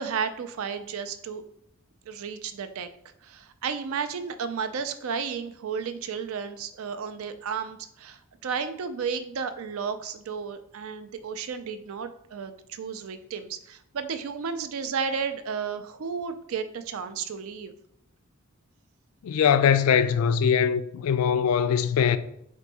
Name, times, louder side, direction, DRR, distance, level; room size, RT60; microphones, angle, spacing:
voice 1, 0.0-1.4 2.1-2.9 3.2-17.7, right 6 dB, 70° right, 0.4 m, -33 dB
voice 2, 19.2-22.2, left 7 dB, 75° left, 0.3 m, -22 dB
4.4 x 2.6 x 4.0 m
head